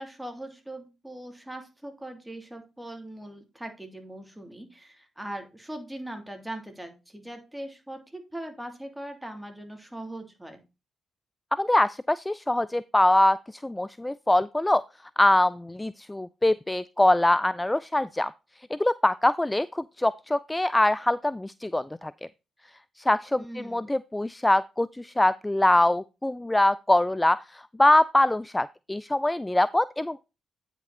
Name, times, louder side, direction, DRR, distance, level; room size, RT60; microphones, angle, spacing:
voice 1, 0.0-10.6 23.4-23.9, right 1 dB, 10° right, 3.1 m, -40 dB
voice 2, 11.6-14.8 15.2-18.3 18.7-22.1 23.0-30.2, left 1 dB, 15° left, 0.3 m, -23 dB
8.9 x 6.0 x 4.2 m
hypercardioid pair, 50°, 0 cm